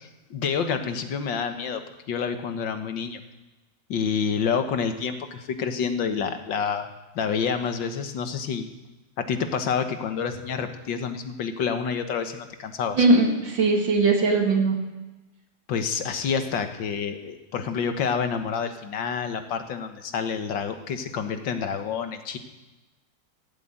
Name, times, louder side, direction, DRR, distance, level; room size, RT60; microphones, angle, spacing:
voice 1, 0.0-1.8 2.1-3.2 3.9-6.9 7.2-8.7 9.2-13.1 15.7-22.4, left 6 dB, 90° left, 7 dB, 2.0 m, -28 dB
voice 2, 12.9-14.8, right 3 dB, 85° right, 2 dB, 2.9 m, -20 dB
16.0 x 8.3 x 8.8 m, 1.1 s
omnidirectional pair, 2.0 m